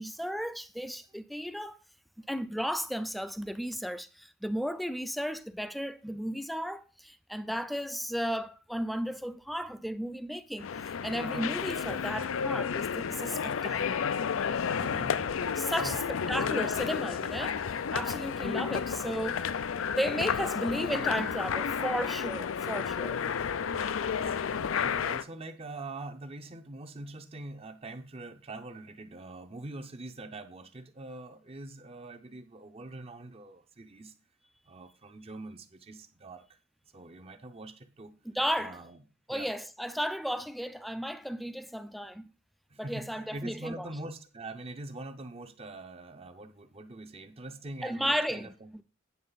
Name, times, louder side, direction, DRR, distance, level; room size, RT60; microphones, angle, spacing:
voice 1, 0.0-1.8 2.3-14.0 15.6-17.6 17.9-19.4 19.9-23.2 38.3-38.8 39.3-42.3 42.8-43.9 47.8-48.8, equal, ahead, 0.4 m, -34 dB
sound 1, 10.6-25.2, left 7 dB, 85° left, 0.5 m, -31 dB
voice 2, 14.6-15.3 15.8-16.6 23.7-23.9 24.3-34.1 34.7-36.6 36.9-38.1 38.6-39.0 39.3-39.5 42.7-48.7, right 2 dB, 30° right, 0.7 m, -44 dB
9.4 x 6.3 x 4.0 m
head